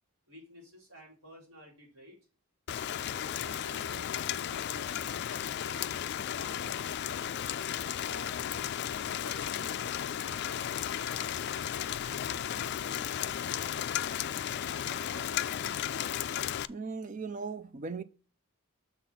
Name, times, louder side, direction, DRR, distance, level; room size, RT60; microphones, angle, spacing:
voice 1, 0.3-2.2 2.9-7.2 7.7-8.4 9.2-14.4 14.8-15.9, right 1 dB, 60° right, 4.2 m, -53 dB
Rain, 2.7-16.7, left 10 dB, 50° left, 0.3 m, -34 dB
voice 2, 16.7-18.0, right 4 dB, 35° right, 0.5 m, -38 dB
6.8 x 4.1 x 5.6 m
head